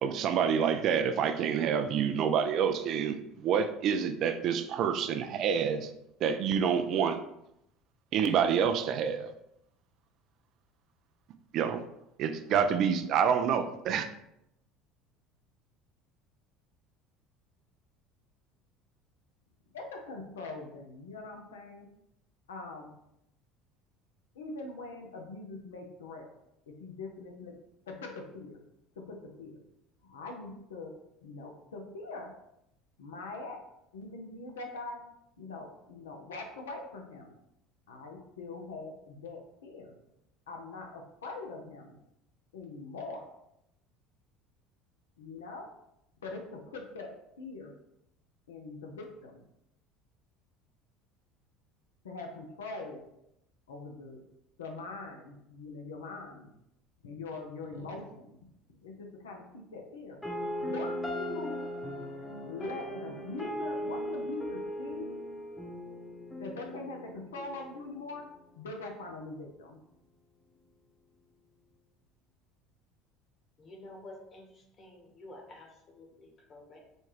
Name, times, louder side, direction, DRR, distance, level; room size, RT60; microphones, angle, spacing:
voice 1, 0.0-5.9 6.2-7.2 8.1-9.3 11.5-11.8 12.2-14.1, right 7 dB, 55° right, 9 dB, 0.3 m, -27 dB
voice 2, 19.7-21.9 22.5-22.9 24.3-26.3 26.7-27.6 27.9-28.6 29.0-29.6 30.0-31.0 31.2-32.3 33.0-33.6 33.9-35.0 35.4-37.3 37.9-39.9 40.5-42.0 42.5-43.3 45.2-45.7 46.2-47.7 48.5-49.4 52.0-53.0 53.7-54.2 54.6-56.5 57.0-58.4 58.7-60.2 60.6-61.6 62.4-65.1 66.4-68.3 68.6-69.8, left 3 dB, 85° left, 2 dB, 0.5 m, -42 dB
sound 1, 60.2-68.2, equal, 15° left, 0.8 m, -38 dB
voice 3, 73.6-76.8, left 1 dB, 40° left, 1 dB, 1.2 m, -50 dB
4.2 x 2.3 x 3.2 m, 0.80 s
hypercardioid pair, 70°, 0 cm